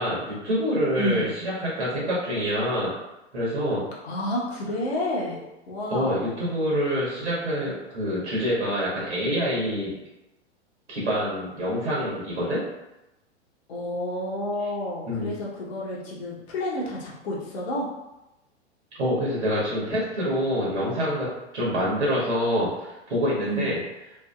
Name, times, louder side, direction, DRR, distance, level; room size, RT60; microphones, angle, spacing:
voice 1, 0.0-2.9 3.3-3.8 5.9-10.0 10.9-12.6 15.1-15.3 19.0-21.3 21.5-23.8, equal, 75° right, -6 dB, 1.3 m, -26 dB
voice 2, 4.0-5.4 5.7-6.3 13.7-17.9 23.4-23.7, left 1 dB, 65° left, -4 dB, 1.0 m, -30 dB
2.9 x 2.7 x 2.4 m, 0.96 s
figure-of-eight pair, 95°, 35 cm